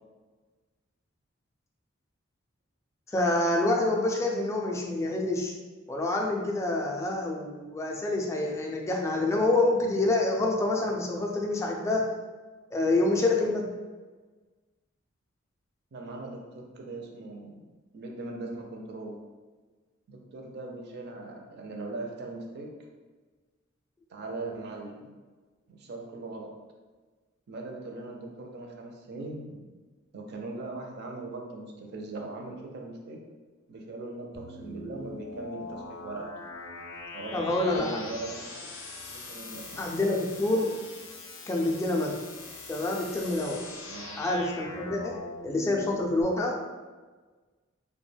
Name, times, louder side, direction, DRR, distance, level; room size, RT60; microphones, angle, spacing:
voice 1, 3.1-5.5 5.9-12.1 12.7-13.7 37.3-38.0 39.8-40.8 41.5-42.2 42.7-43.6 44.2-46.6, left 2 dB, 15° left, -1 dB, 0.3 m, -27 dB
voice 2, 15.9-17.6 17.9-19.2 20.1-22.7 24.1-25.1 25.7-26.5 27.5-29.6 30.1-33.2 33.7-36.3 37.1-38.7 39.1-39.8 43.9-44.2, right 2 dB, 55° right, 1 dB, 0.4 m, -40 dB
sound 1, 34.3-46.2, left 3 dB, 80° left, 0.4 m, -42 dB
2.2 x 2.1 x 3.2 m, 1.3 s
head